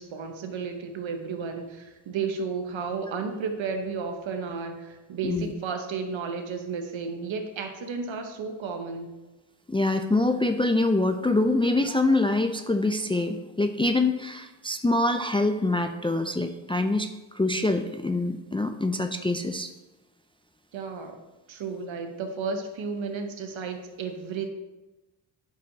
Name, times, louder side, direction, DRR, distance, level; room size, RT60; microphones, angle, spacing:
voice 1, 0.0-9.1 20.7-21.2 21.5-24.5, right 5 dB, 70° right, 5 dB, 1.1 m, -33 dB
voice 2, 9.7-19.7, left 2 dB, 10° left, 6 dB, 0.4 m, -25 dB
8.3 x 6.2 x 2.8 m, 1.1 s
cardioid pair, 60°, 49 cm